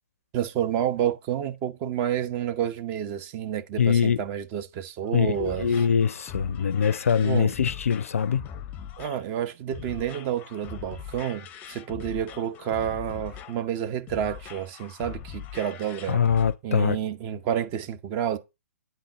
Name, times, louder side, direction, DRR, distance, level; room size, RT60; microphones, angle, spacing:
voice 1, 0.3-5.7 7.2-7.5 9.0-16.2 16.6-18.4, right 10 dB, 30° right, 0.7 m, -29 dB
voice 2, 3.8-4.2 5.1-8.5 16.1-17.0, left 7 dB, 65° left, 0.4 m, -23 dB
sound 1, 5.0-16.5, left 8 dB, 20° left, 0.6 m, -42 dB
9.1 x 4.0 x 4.8 m
figure-of-eight pair, 125°, 8 cm